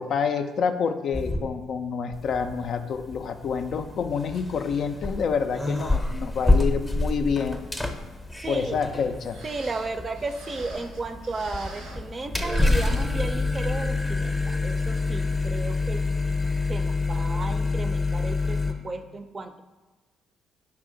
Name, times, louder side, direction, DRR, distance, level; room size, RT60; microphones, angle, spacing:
voice 1, 0.0-7.8 8.5-9.4, left 6 dB, 60° left, 7 dB, 0.3 m, -28 dB
sound 1, 1.1-1.9 2.1-18.7, left 2 dB, 15° left, 0.6 m, -27 dB
voice 2, 8.4-8.8 9.4-16.0 16.7-18.6 18.8-19.6, right 3 dB, 35° right, 7 dB, 0.4 m, -34 dB
sound 2, 9.3-12.1 12.4-13.7 14.1-14.2 14.9-15.1 15.6-15.7, right 2 dB, 85° right, 0.7 m, -45 dB
4.5 x 2.7 x 3.8 m, 1.2 s
hypercardioid pair, 50°, 0 cm